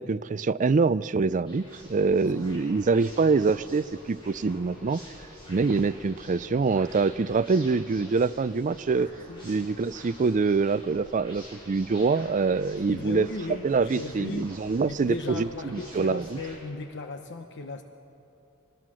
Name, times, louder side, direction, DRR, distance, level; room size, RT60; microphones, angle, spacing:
voice 1, 0.0-1.6 1.9-5.0 5.5-9.1 9.4-13.3 13.6-16.4, right 4 dB, 35° right, 15 dB, 0.4 m, -25 dB
sound 1, 1.4-16.6, equal, 25° left, 7.7 m, -47 dB
voice 2, 12.9-14.5 14.9-17.8, left 2 dB, 55° left, 6 dB, 1.0 m, -36 dB
26.0 x 20.5 x 6.3 m, 2.8 s
head